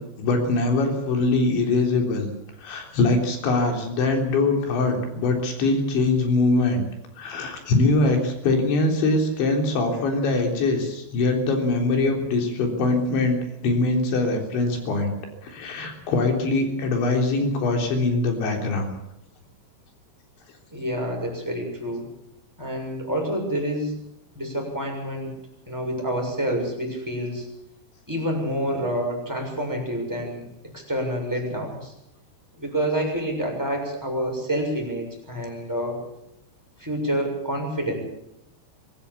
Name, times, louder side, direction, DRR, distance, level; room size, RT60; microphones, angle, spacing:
voice 1, 0.0-2.3 2.6-6.8 7.2-15.1 15.4-18.9, left 3 dB, 85° left, 3 dB, 6.0 m, -22 dB
voice 2, 20.7-22.1 22.6-23.9 24.3-25.3 25.7-27.5 28.1-31.9 32.6-36.0 36.8-38.0, equal, 5° right, -1 dB, 6.7 m, -28 dB
24.0 x 15.5 x 7.1 m, 0.82 s
omnidirectional pair, 5.1 m